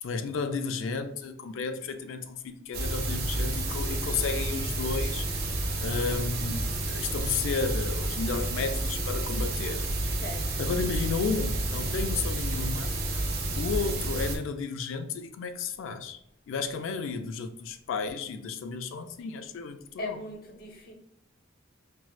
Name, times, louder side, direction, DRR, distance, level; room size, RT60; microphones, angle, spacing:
voice 1, 0.0-5.2 5.8-9.9 10.6-13.0 13.5-16.2 16.5-20.2, left 5 dB, 75° left, 0.3 m, -33 dB
sound 1, 2.7-14.4, right 1 dB, 50° right, 0.7 m, -30 dB
voice 2, 10.2-10.7 20.0-20.9, left 2 dB, 50° left, 0.7 m, -39 dB
4.5 x 2.0 x 2.3 m
head